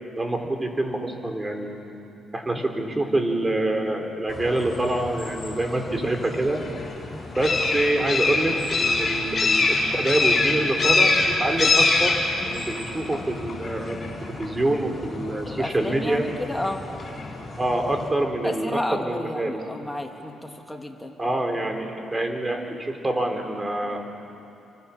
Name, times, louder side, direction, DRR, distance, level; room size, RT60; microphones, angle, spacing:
voice 1, 0.2-1.8 2.3-6.6 7.4-12.2 12.4-16.3 17.6-19.5 21.2-24.2, right 1 dB, 20° right, 4 dB, 3.8 m, -26 dB
sound 1, 4.3-18.1, left 3 dB, 40° left, 6.7 m, -26 dB
voice 2, 15.4-16.9 18.4-21.2, left 1 dB, 10° left, 2 dB, 2.6 m, -31 dB
29.5 x 25.0 x 7.2 m, 2.9 s
cardioid pair, 90°, 0 cm